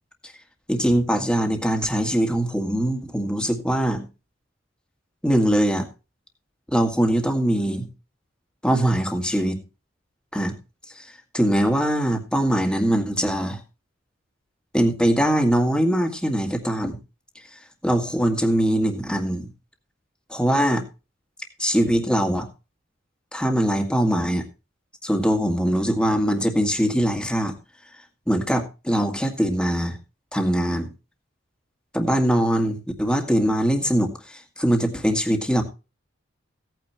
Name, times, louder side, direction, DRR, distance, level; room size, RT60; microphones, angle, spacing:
voice 1, 0.7-4.1 5.2-5.9 6.7-7.9 8.6-9.6 10.3-10.6 11.0-13.6 14.7-17.0 17.8-19.5 20.3-20.8 21.6-22.5 23.3-24.5 25.0-27.5 28.3-30.0 30.3-30.9 31.9-35.6, equal, 5° left, 4 dB, 1.9 m, -22 dB
16.5 x 9.2 x 3.1 m, 0.30 s
head